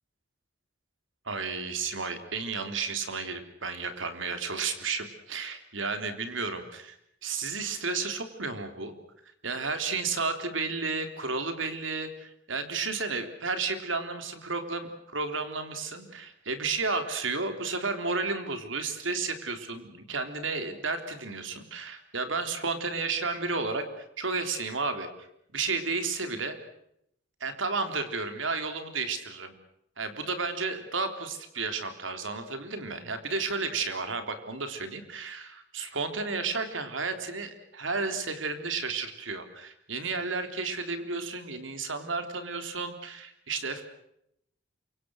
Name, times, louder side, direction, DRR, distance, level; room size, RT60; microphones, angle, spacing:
voice 1, 1.3-7.0 7.2-9.0 9.4-23.8 24.2-25.1 25.5-26.6 27.4-29.5 30.0-43.8, right 4 dB, 80° right, 8 dB, 3.5 m, -32 dB
28.0 x 24.5 x 6.4 m, 0.76 s
head